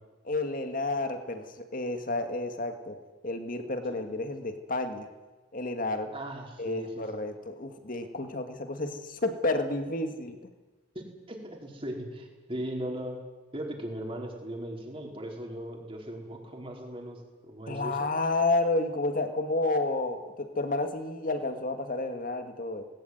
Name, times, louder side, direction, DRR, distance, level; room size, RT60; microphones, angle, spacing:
voice 1, 0.2-3.0 3.2-5.1 5.5-6.1 6.6-10.5 17.7-22.8, left 2 dB, 45° left, 7 dB, 2.3 m, -30 dB
voice 2, 6.1-7.0 10.9-13.2 13.5-18.1, right 1 dB, 30° right, 0 dB, 4.7 m, -38 dB
19.5 x 18.5 x 9.6 m, 1.2 s
head